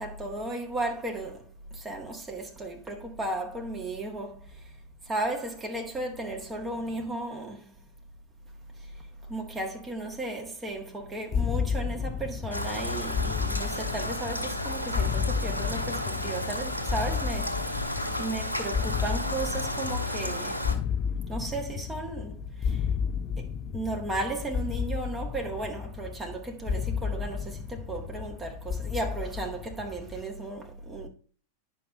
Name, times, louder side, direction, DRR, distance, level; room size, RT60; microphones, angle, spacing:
voice 1, 0.0-1.5 1.7-4.7 5.0-7.7 8.8-9.0 9.3-20.7 21.3-22.9 23.4-23.5 23.7-31.1, right 2 dB, 15° right, 1.8 m, -35 dB
sound 1, 11.3-30.2, left 7 dB, 30° left, 0.4 m, -33 dB
Rain, 12.5-20.7, left 1 dB, 85° left, 1.2 m, -32 dB
10.5 x 5.7 x 2.8 m
figure-of-eight pair, 90°, 0 cm